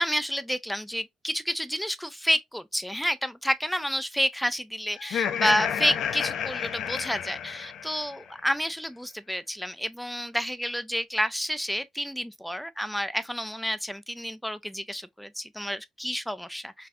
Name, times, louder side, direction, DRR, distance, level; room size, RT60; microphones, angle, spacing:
voice 1, 0.0-16.9, equal, ahead, 0.4 m, -30 dB
Laughter, 5.0-8.2, left 8 dB, 75° left, 0.6 m, -30 dB
4.0 x 2.6 x 2.5 m
cardioid pair, 90°, 0 cm